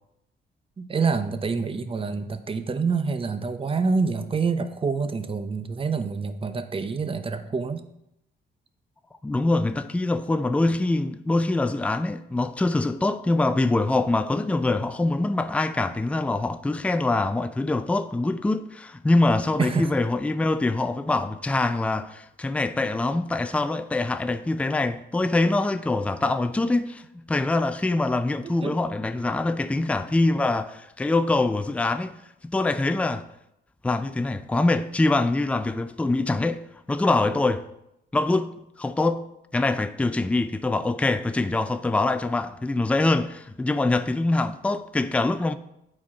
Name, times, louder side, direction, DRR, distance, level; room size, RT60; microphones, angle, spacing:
voice 1, 0.8-7.9 19.6-19.9 28.4-28.8, right 4 dB, 25° right, 0.7 m, -27 dB
voice 2, 9.2-32.2 32.4-33.2 33.8-36.6 36.9-37.6 38.1-38.5 38.8-39.3 39.5-45.5, left 2 dB, 5° left, 0.4 m, -24 dB
8.6 x 4.4 x 4.3 m
cardioid pair, 90°, 20 cm